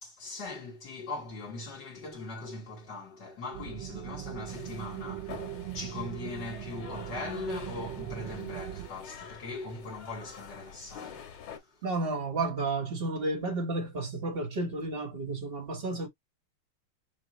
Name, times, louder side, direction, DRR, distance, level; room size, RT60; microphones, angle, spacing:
voice 1, 0.0-11.8, left 3 dB, 55° left, 2.1 m, -40 dB
sound 1, 3.5-8.9, right 14 dB, 70° right, 1.3 m, -40 dB
sound 2, 4.5-11.6, left 7 dB, 80° left, 2.1 m, -47 dB
voice 2, 11.8-16.1, right 2 dB, 30° right, 1.4 m, -32 dB
6.2 x 2.6 x 2.9 m
omnidirectional pair, 2.3 m